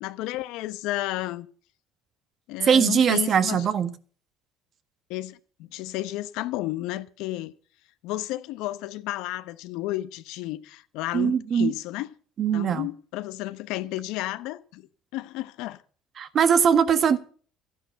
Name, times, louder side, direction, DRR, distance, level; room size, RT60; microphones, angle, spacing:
voice 1, 0.0-1.5 2.5-3.6 5.1-7.5 8.0-12.1 12.5-14.9 15.1-15.8, left 16 dB, 80° left, 1.0 m, -32 dB
voice 2, 2.7-3.9 11.1-11.7 12.4-12.9 16.2-17.2, right 7 dB, 45° right, 1.5 m, -21 dB
13.0 x 10.5 x 6.7 m
supercardioid pair, 100°, 0 cm